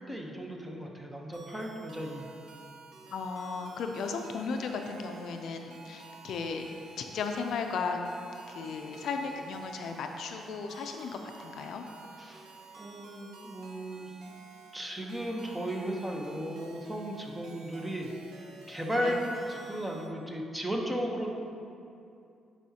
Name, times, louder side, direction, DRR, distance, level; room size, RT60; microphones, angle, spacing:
voice 1, 0.0-2.3 12.2-12.5 12.8-14.1 14.7-18.1 18.7-21.3, equal, 10° right, 0 dB, 0.9 m, -35 dB
sound 1, 1.3-20.1, right 3 dB, 75° right, 0.8 m, -52 dB
voice 2, 3.1-6.7 7.0-8.0 8.5-11.9 18.9-19.2, left 5 dB, 70° left, 4 dB, 0.4 m, -35 dB
9.6 x 4.8 x 2.8 m, 2.6 s
cardioid pair, 90°, 0 cm